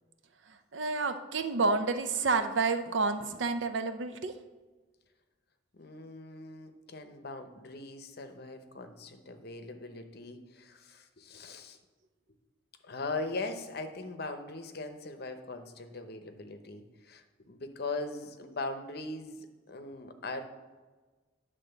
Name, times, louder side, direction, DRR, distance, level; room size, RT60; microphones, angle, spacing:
voice 1, 0.5-4.3, right 4 dB, 75° right, 9 dB, 0.6 m, -30 dB
voice 2, 5.7-11.8 12.8-20.4, left 3 dB, 55° left, 7 dB, 0.8 m, -40 dB
9.9 x 3.7 x 6.7 m, 1.3 s
head